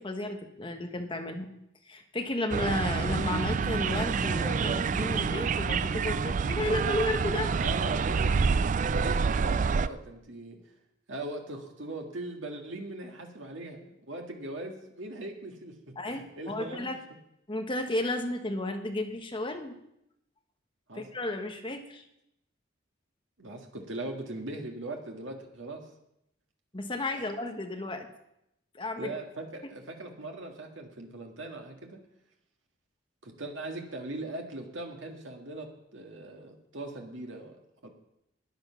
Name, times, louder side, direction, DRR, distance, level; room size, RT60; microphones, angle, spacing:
voice 1, 0.0-1.5 1.9-7.5 16.0-17.0 17.5-19.7 20.9-22.0 26.7-28.1 28.7-29.1, left 2 dB, 25° left, 4 dB, 1.2 m, -33 dB
sound 1, 2.5-9.9, right 5 dB, 40° right, 0.4 m, -27 dB
voice 2, 7.6-10.6 11.1-15.7 16.0-16.9 20.9-21.0 23.4-25.8 27.2-27.3 29.0-32.0 33.2-37.6 37.8-37.9, right 2 dB, 85° right, 2 dB, 1.8 m, -40 dB
13.0 x 9.8 x 5.7 m, 0.82 s
head